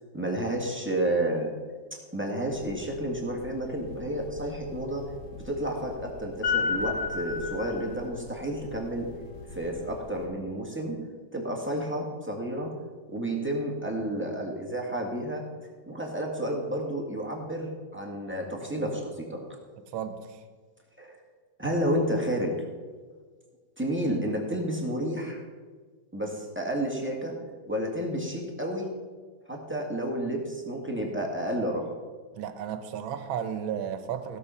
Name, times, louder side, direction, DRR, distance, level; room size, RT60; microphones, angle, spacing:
voice 1, 0.1-1.5 1.9-5.0 5.3-9.1 9.5-11.0 11.3-12.7 13.1-15.4 15.9-19.4 21.0-21.2 21.6-22.5 23.8-25.4 26.1-27.3 27.6-28.9 29.5-31.8, right 1 dB, 5° right, 0 dB, 1.7 m, -31 dB
sound 1, 2.5-10.3, left 5 dB, 60° left, 1.8 m, -36 dB
voice 2, 19.9-20.4 32.3-34.4, right 8 dB, 80° right, 10 dB, 1.7 m, -33 dB
16.0 x 6.6 x 5.7 m, 1.5 s
omnidirectional pair, 2.2 m